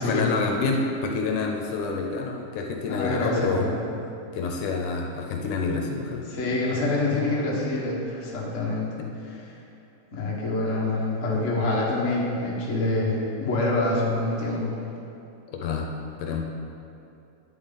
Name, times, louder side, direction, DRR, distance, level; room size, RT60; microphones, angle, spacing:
voice 1, 0.0-3.7 4.3-6.2 9.0-9.1 15.5-15.9 16.2-16.5, left 4 dB, 75° left, 2 dB, 2.1 m, -28 dB
voice 2, 2.9-3.8 6.3-9.0 10.1-14.7, left 2 dB, 40° left, -4 dB, 1.1 m, -26 dB
10.5 x 7.6 x 4.1 m, 2.7 s
omnidirectional pair, 3.8 m